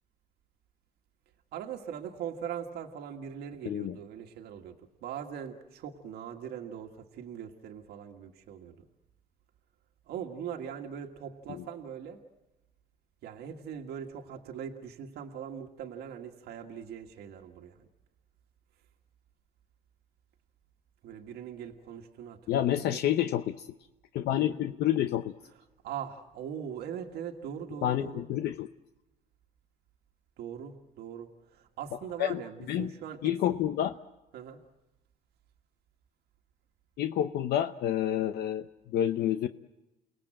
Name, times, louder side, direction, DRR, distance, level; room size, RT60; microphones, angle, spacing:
voice 1, 1.5-8.9 10.1-12.2 13.2-17.9 21.0-23.0 25.8-28.3 30.4-33.3 34.3-34.6, right 8 dB, 75° right, 3 dB, 1.8 m, -41 dB
voice 2, 22.5-23.6 24.1-25.3 27.8-28.7 32.2-32.4 32.7-32.9 33.2-33.9 37.0-38.7 38.9-39.5, left 11 dB, 70° left, 9 dB, 0.8 m, -28 dB
29.5 x 19.0 x 7.6 m, 1.0 s
cardioid pair, 110°, 17 cm